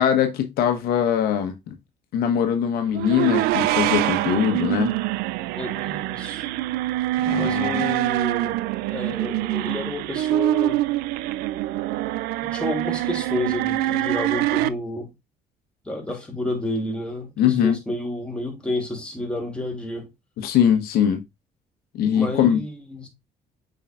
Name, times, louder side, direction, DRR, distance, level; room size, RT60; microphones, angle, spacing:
voice 1, 0.0-1.7 2.1-4.9 7.2-7.9 17.4-17.8 20.4-21.2 21.9-22.6, left 9 dB, 80° left, 1.2 m, -21 dB
sound 1, 2.9-14.7, right 15 dB, 85° right, 0.4 m, -24 dB
voice 2, 5.6-6.5 7.4-8.6 8.9-10.9 12.4-15.1 15.8-20.1 22.1-23.1, left 1 dB, 5° left, 2.6 m, -30 dB
7.7 x 4.9 x 2.5 m
cardioid pair, 90°, 16 cm